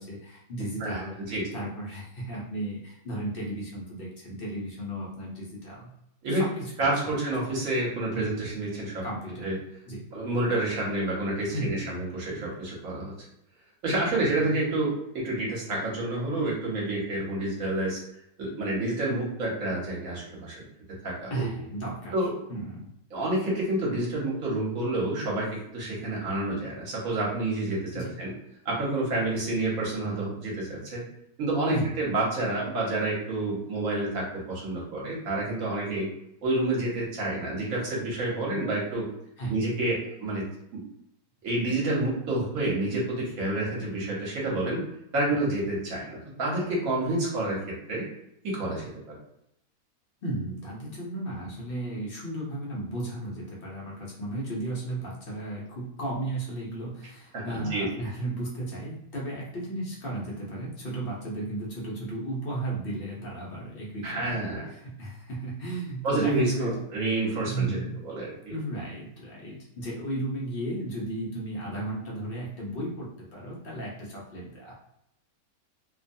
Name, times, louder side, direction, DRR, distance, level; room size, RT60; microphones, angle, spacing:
voice 1, 0.0-1.1 1.5-5.9 6.3-7.1 8.1-8.6 9.0-9.6 9.9-10.0 11.5-12.0 14.1-14.5 21.3-22.1 22.5-22.9 27.9-28.2 31.7-31.9 39.4-39.5 45.3-45.4 50.2-64.4 64.7-66.8 67.5-68.0 68.5-74.7, right 2 dB, 55° left, -4 dB, 0.6 m, -34 dB
voice 2, 0.8-1.4 6.2-6.5 6.8-9.0 9.4-9.6 10.1-13.1 13.8-18.0 18.4-20.6 21.0-21.4 22.1-22.3 23.1-28.3 28.6-31.0 31.4-36.1 36.4-39.1 39.5-40.5 40.7-40.8 41.4-44.8 45.1-47.6 47.9-48.0 48.4-48.9 57.3-58.0 64.0-64.7 66.0-67.8 68.0-68.5, right 2 dB, 55° right, -4 dB, 1.3 m, -29 dB
2.9 x 2.2 x 2.6 m, 0.79 s
omnidirectional pair, 1.8 m